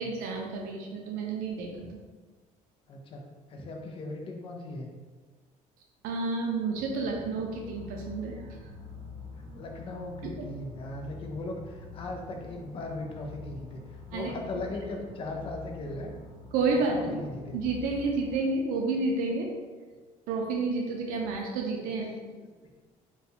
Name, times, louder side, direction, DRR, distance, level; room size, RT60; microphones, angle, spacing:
voice 1, 0.0-2.0 6.0-8.3 14.1-14.3 16.5-17.2 17.5-19.5 20.3-22.1, right 3 dB, 90° right, 1 dB, 0.5 m, -30 dB
voice 2, 2.9-3.2 3.5-4.9 9.5-16.1 16.9-17.6 22.0-22.5, left 2 dB, 40° left, 2 dB, 0.5 m, -38 dB
sound 1, 6.7-18.3, left 4 dB, 40° right, 0.6 m, -46 dB
4.0 x 2.2 x 2.7 m, 1.4 s
cardioid pair, 150°, 14 cm